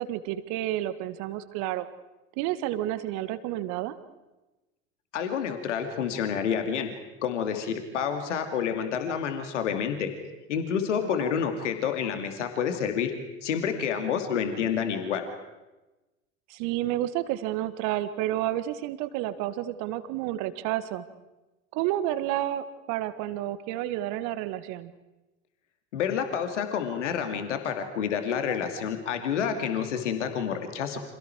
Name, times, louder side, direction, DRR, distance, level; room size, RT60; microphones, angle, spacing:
voice 1, 0.0-1.9 2.4-4.0 11.2-11.3 16.5-21.0 21.7-24.9, right 14 dB, 50° right, 13 dB, 1.8 m, -30 dB
voice 2, 5.1-6.9 7.2-10.1 10.5-13.1 13.4-15.3 25.9-31.0, left 7 dB, 65° left, 6 dB, 2.7 m, -29 dB
30.0 x 27.0 x 4.7 m, 1.1 s
figure-of-eight pair, 75°, 38 cm